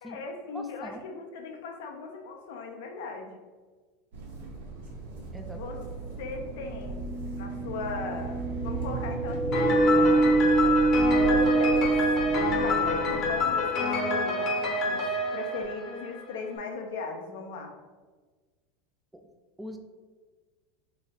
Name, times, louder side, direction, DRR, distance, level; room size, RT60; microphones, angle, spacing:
voice 1, 0.0-3.3 5.4-5.8 6.2-7.1 7.3-10.8 11.2-12.0 12.5-15.1 15.3-17.7, left 4 dB, 75° left, 3 dB, 0.6 m, -38 dB
voice 2, 0.5-1.0 5.3-5.6 19.1-19.3 19.6-19.8, equal, 10° right, 5 dB, 0.3 m, -41 dB
sound 1, 4.1-13.4, right 3 dB, 80° right, 0.8 m, -38 dB
sound 2, 4.9-5.0 6.5-13.3, right 3 dB, 15° left, 0.7 m, -25 dB
Piano, 9.5-16.3, left 3 dB, 45° left, 0.8 m, -28 dB
3.2 x 2.4 x 4.2 m, 1.4 s
supercardioid pair, 115°, 0 cm